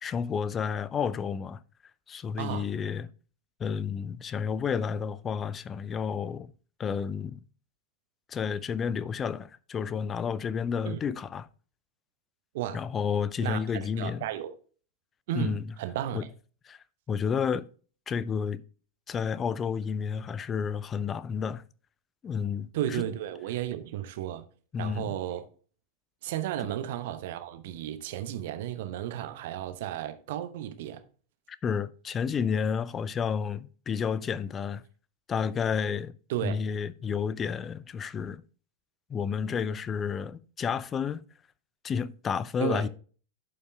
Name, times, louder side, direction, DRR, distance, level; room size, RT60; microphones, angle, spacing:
voice 1, 0.0-1.6 2.1-3.1 3.6-6.5 6.8-7.4 8.3-11.5 12.7-14.2 15.3-15.7 16.1-16.3 16.7-16.8 17.1-17.7 18.1-18.6 19.1-21.6 22.2-23.0 24.7-25.2 31.5-34.8 35.3-36.1 36.4-38.4 39.1-41.2 41.8-42.9, left 6 dB, 25° left, 0.5 m, -31 dB
voice 2, 2.4-2.7 10.9-11.0 12.5-12.8 13.4-14.5 15.3-16.2 22.7-24.4 24.8-25.5 26.2-31.0 36.3-36.6 42.6-42.9, right 12 dB, 55° right, 1.0 m, -33 dB
11.5 x 5.4 x 3.4 m
figure-of-eight pair, 90°, 0 cm